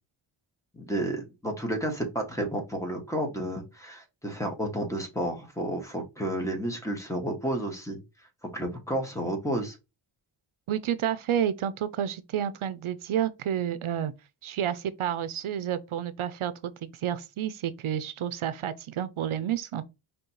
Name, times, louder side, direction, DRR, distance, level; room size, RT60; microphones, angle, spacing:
voice 1, 0.7-8.0 8.5-9.8, right 1 dB, 5° left, 1.7 m, -31 dB
voice 2, 10.7-14.1 14.4-19.8, right 10 dB, 75° right, 0.6 m, -30 dB
5.2 x 3.5 x 2.9 m
wide cardioid pair, 85°, 49 cm